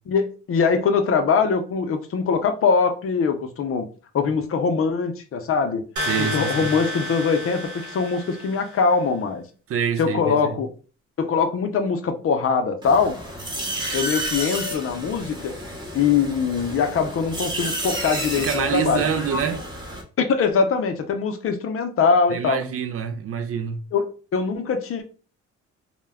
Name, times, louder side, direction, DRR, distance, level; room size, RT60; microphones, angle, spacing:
voice 1, 0.1-3.9 4.1-5.8 6.2-9.4 10.0-10.7 11.2-13.2 13.9-15.5 15.9-19.0 20.2-22.6 23.9-25.0, left 5 dB, 45° left, 0.5 m, -22 dB
voice 2, 6.0-6.7 9.7-10.6 18.4-19.7 22.3-23.8, right 7 dB, 50° right, 0.4 m, -26 dB
sound 1, 6.0-8.9, equal, 70° right, 0.9 m, -30 dB
sound 2, 12.8-20.0, equal, 15° right, 0.8 m, -31 dB
2.2 x 2.1 x 3.4 m
cardioid pair, 90°, 30 cm